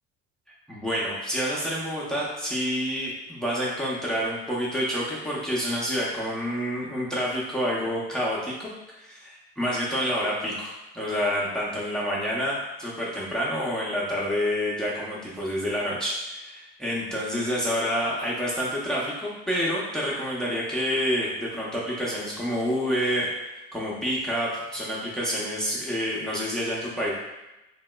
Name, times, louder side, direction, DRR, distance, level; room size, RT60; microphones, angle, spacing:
voice 1, 0.7-8.7 9.0-23.3 23.7-27.1, equal, 5° left, -6 dB, 0.6 m, -28 dB
3.0 x 2.9 x 2.2 m, 1.0 s
supercardioid pair, 105°, 30 cm